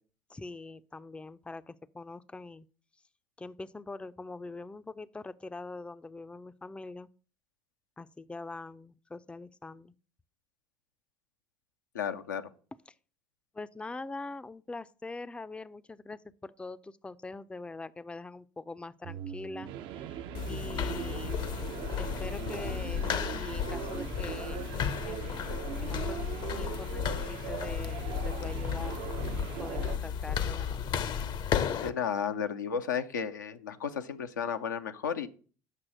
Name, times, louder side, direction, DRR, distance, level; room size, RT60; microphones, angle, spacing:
voice 1, 0.3-2.7 3.4-7.1 8.0-9.9 13.5-21.4 21.9-24.8 25.0-29.1 29.6-30.9, left 3 dB, 10° left, 0.4 m, -43 dB
voice 2, 11.9-12.4 31.8-35.3, left 7 dB, 85° left, 0.6 m, -33 dB
sound 1, 19.0-30.0, right 10 dB, 60° right, 0.6 m, -40 dB
sound 2, 20.3-31.9, left 8 dB, 50° left, 0.7 m, -34 dB
7.6 x 6.1 x 6.2 m
hypercardioid pair, 65°, 10 cm